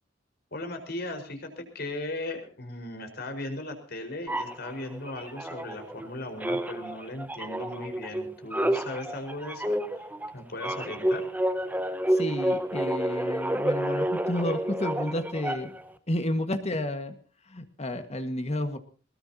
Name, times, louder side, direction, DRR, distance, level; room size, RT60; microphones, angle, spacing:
voice 1, 0.5-10.1 10.3-11.3, left 2 dB, 55° left, 5 dB, 4.8 m, -37 dB
sound 1, 4.3-6.1 6.4-15.9, right 1 dB, 10° right, 1.2 m, -30 dB
voice 2, 12.1-15.7 16.1-17.1 17.5-18.8, left 1 dB, 35° left, 8 dB, 1.7 m, -31 dB
21.0 x 20.5 x 2.8 m, 0.38 s
head